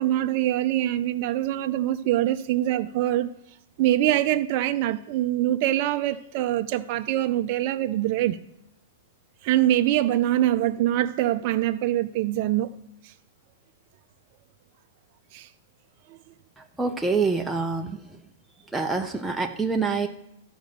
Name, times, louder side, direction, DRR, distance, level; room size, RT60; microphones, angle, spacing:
voice 1, 0.0-3.3 3.8-8.4 9.4-12.7 15.3-15.4, right 13 dB, 50° right, 0.4 m, -24 dB
voice 2, 16.6-18.0 18.7-20.1, right 4 dB, 5° right, 0.6 m, -26 dB
12.5 x 5.1 x 6.7 m
hypercardioid pair, 130°, 0 cm